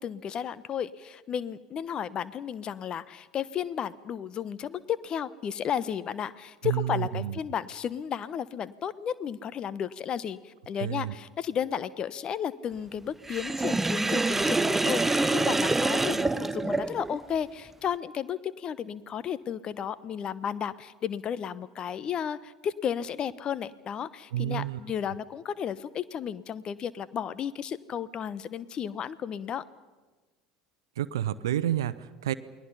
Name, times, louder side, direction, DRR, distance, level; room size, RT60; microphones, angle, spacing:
voice 1, 0.0-29.6, left 8 dB, 40° left, 17 dB, 1.0 m, -33 dB
voice 2, 6.6-7.4 10.8-11.1 24.3-24.8 31.0-32.3, right 12 dB, 75° right, 13 dB, 0.8 m, -29 dB
Sink (filling or washing), 13.3-17.2, right 2 dB, 10° right, 0.6 m, -26 dB
29.0 x 20.5 x 5.7 m, 1.3 s
figure-of-eight pair, 70°, 2 cm